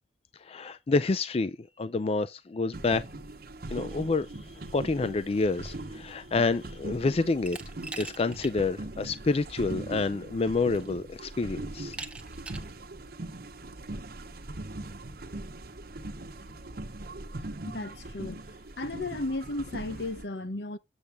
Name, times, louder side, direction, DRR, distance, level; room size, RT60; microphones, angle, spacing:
voice 1, 0.5-3.0 3.7-4.3 4.7-7.6 8.0-12.0, left 3 dB, 35° left, 0.4 m, -28 dB
sound 1, 2.7-20.2, right 2 dB, 60° right, 1.0 m, -41 dB
Glass, 7.5-8.6 9.0-9.1 10.2-10.3 10.7-11.2 11.9-12.7, right 3 dB, 5° right, 1.0 m, -41 dB
voice 2, 17.7-18.4 18.8-20.8, left 2 dB, 70° left, 0.9 m, -34 dB
8.1 x 7.1 x 3.5 m
head